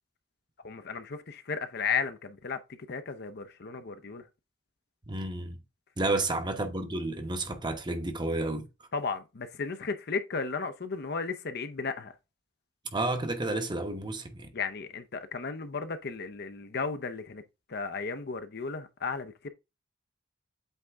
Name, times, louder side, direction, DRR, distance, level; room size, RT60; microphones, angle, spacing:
voice 1, 0.6-4.3 8.9-12.1 14.5-17.4 17.7-19.5, left 5 dB, 55° left, 0.7 m, -34 dB
voice 2, 5.1-5.6 6.0-8.9 12.8-14.5, right 2 dB, 25° right, 0.9 m, -31 dB
8.1 x 3.7 x 3.4 m
head